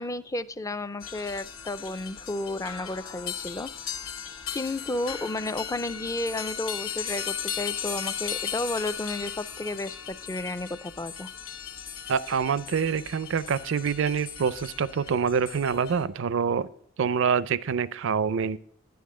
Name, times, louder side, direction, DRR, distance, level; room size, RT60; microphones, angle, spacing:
voice 1, 0.0-3.7 4.5-11.3, left 2 dB, 15° left, 13 dB, 0.4 m, -32 dB
sound 1, 1.0-16.0, left 8 dB, 85° left, 1.0 m, -37 dB
voice 2, 12.1-16.7 17.0-18.6, right 6 dB, 65° right, 17 dB, 0.4 m, -26 dB
11.0 x 9.4 x 3.7 m, 0.64 s
head